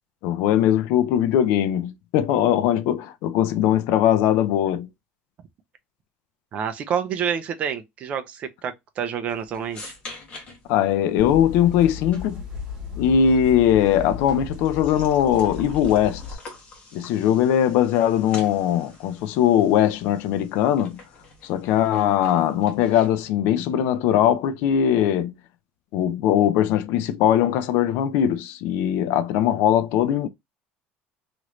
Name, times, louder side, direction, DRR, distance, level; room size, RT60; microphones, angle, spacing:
voice 1, 0.2-4.9 10.7-12.4 13.0-16.2 16.9-21.0 21.4-25.3 25.9-30.3, left 10 dB, 60° left, 0.3 m, -20 dB
voice 2, 6.5-9.9, right 7 dB, 30° right, 0.4 m, -28 dB
sound 1, 9.3-23.3, left 2 dB, 30° left, 1.0 m, -46 dB
sound 2, 11.2-16.3, left 5 dB, 15° right, 1.6 m, -35 dB
3.0 x 2.5 x 2.9 m
cardioid pair, 180°, 4 cm